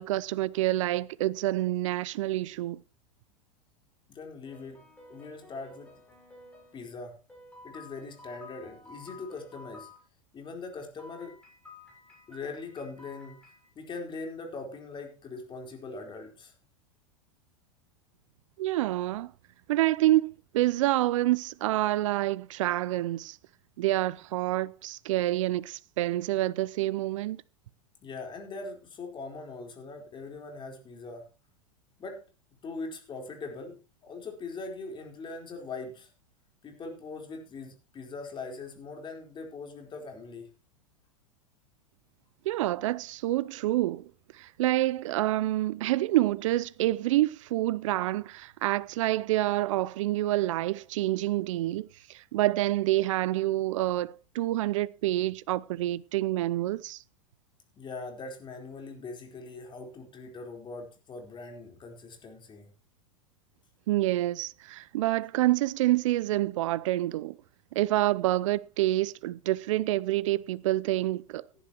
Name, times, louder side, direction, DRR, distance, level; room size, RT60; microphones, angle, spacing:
voice 1, 0.0-2.8 18.6-19.3 19.7-23.4 23.8-27.4 42.5-57.0 63.9-67.4 67.7-71.4, right 16 dB, 70° right, 0.6 m, -27 dB
voice 2, 4.1-4.8 5.1-5.9 6.7-7.2 7.6-9.9 10.3-11.3 12.3-13.4 13.7-16.5 28.0-31.3 32.0-32.2 32.6-36.1 36.6-40.5 57.7-62.7, left 3 dB, 30° left, 4.4 m, -41 dB
sound 1, 4.5-6.8 7.3-10.0 11.0-13.7, left 2 dB, 5° left, 7.3 m, -52 dB
17.0 x 11.0 x 3.0 m
hypercardioid pair, 100°, 17 cm